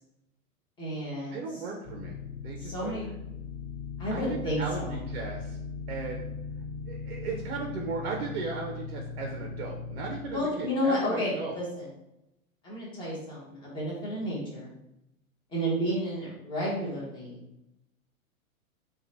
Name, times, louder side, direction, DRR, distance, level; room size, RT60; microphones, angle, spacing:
voice 1, 0.8-1.4 2.6-3.1 4.0-5.0 10.2-11.9 12.6-14.7 15.5-17.4, equal, 10° left, -5 dB, 0.8 m, -31 dB
voice 2, 1.3-2.2 2.4-3.0 4.1-5.6 5.9-6.3 6.9-11.6, right 4 dB, 50° right, 0 dB, 0.5 m, -36 dB
sound 1, 1.8-10.2, left 5 dB, 55° left, 1.0 m, -39 dB
2.8 x 2.2 x 2.6 m, 0.86 s
hypercardioid pair, 115°, 42 cm